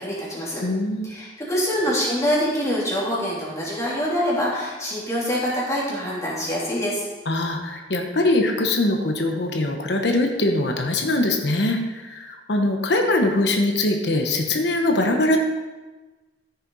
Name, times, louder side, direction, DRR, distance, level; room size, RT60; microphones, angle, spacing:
voice 1, 0.0-0.6 1.0-7.1, equal, 15° left, -6 dB, 3.1 m, -25 dB
voice 2, 0.6-1.2 7.2-15.4, left 2 dB, 70° left, 3 dB, 1.1 m, -22 dB
14.0 x 6.8 x 4.1 m, 1.2 s
head